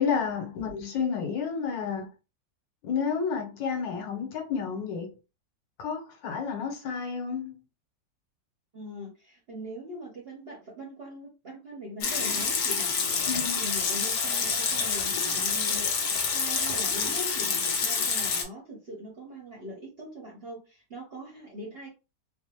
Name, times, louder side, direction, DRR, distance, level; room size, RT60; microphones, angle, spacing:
voice 1, 0.0-2.1 2.8-5.1 5.8-7.5 13.3-13.6, left 6 dB, 85° left, 1.5 m, -30 dB
voice 2, 8.7-13.3 13.6-21.9, equal, 50° right, 0.7 m, -42 dB
Water tap faucet / Sink (filling or washing) / Liquid, 12.0-18.4, left 5 dB, 65° left, 1.1 m, -27 dB
3.3 x 2.0 x 2.8 m
omnidirectional pair, 2.0 m